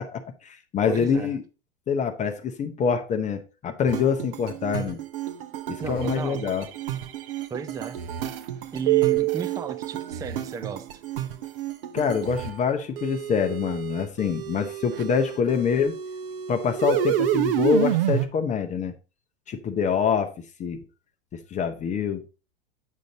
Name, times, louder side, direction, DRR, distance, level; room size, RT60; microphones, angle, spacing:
voice 1, 0.0-1.4 1.9-5.0 5.7-6.7 11.9-15.9 16.5-18.9 19.5-20.3 20.6-20.8 21.3-22.2, left 6 dB, 25° left, 0.7 m, -25 dB
voice 2, 0.9-1.3 5.8-6.4 7.5-8.0 8.7-11.0, right 5 dB, 10° right, 0.4 m, -34 dB
sound 1, 3.9-12.5 13.0-18.3, right 12 dB, 65° right, 0.9 m, -29 dB
8.4 x 5.1 x 3.9 m
figure-of-eight pair, 90°, 30 cm